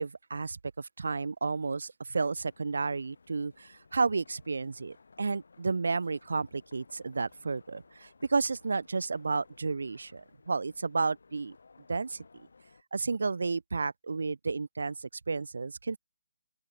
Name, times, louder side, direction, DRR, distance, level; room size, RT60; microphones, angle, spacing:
voice 1, 0.0-11.6 11.9-12.2 12.9-16.0, right 4 dB, 70° right, 0.8 m, -32 dB
sound 1, 2.2-12.8, left 4 dB, 70° left, 5.9 m, -60 dB
open air
hypercardioid pair, 180°, 0 cm